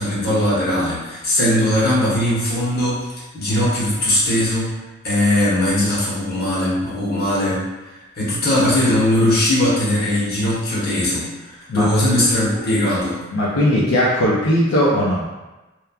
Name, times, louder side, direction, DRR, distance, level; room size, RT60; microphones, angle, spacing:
voice 1, 0.0-4.7 5.0-7.6 8.2-13.2, left 1 dB, 50° left, -7 dB, 0.9 m, -19 dB
voice 2, 13.3-15.3, equal, 85° left, -5 dB, 0.4 m, -18 dB
2.9 x 2.2 x 2.3 m, 1.1 s
head